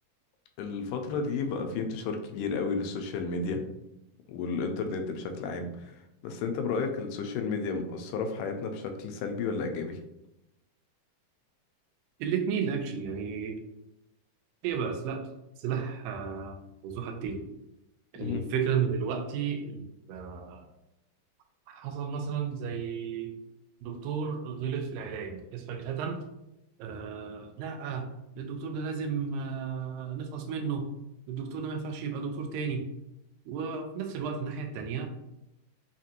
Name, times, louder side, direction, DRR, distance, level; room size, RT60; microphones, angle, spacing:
voice 1, 0.6-3.6 4.3-6.0 6.2-10.0 18.2-18.4, left 4 dB, 80° left, 5 dB, 2.1 m, -32 dB
voice 2, 12.2-13.6 14.6-15.3 15.6-17.4 18.1-20.7 21.7-23.4 23.8-26.3 26.8-28.1 28.4-30.9 31.3-32.9 33.5-35.1, right 6 dB, 85° right, 5 dB, 2.3 m, -33 dB
5.7 x 2.5 x 2.8 m, 0.89 s
omnidirectional pair, 3.9 m